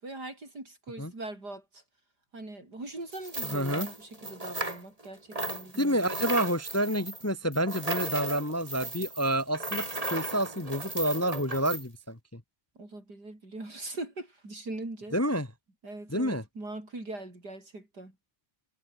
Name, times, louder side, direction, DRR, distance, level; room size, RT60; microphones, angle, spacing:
voice 1, 0.0-1.8 2.3-6.0 12.8-15.2 15.8-18.2, right 2 dB, 65° right, 7.8 m, -41 dB
sound 1, 3.1-5.1 5.3-11.8, right 2 dB, 20° right, 3.2 m, -36 dB
voice 2, 3.5-3.9 5.8-12.4 15.1-15.5 16.1-16.4, equal, 10° left, 1.4 m, -29 dB
omnidirectional pair, 1.8 m